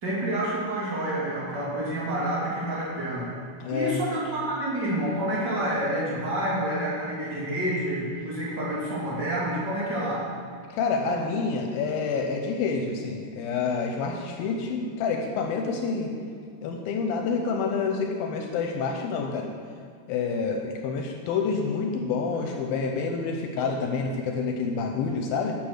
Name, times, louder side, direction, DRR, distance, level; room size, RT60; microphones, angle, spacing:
voice 1, 0.0-3.3 3.7-10.3, right 1 dB, 30° right, -6 dB, 2.4 m, -28 dB
voice 2, 3.6-4.0 10.7-16.1 16.6-19.5 20.1-25.6, left 5 dB, 80° left, 3 dB, 2.2 m, -28 dB
10.0 x 6.0 x 6.5 m, 2.3 s
omnidirectional pair, 4.8 m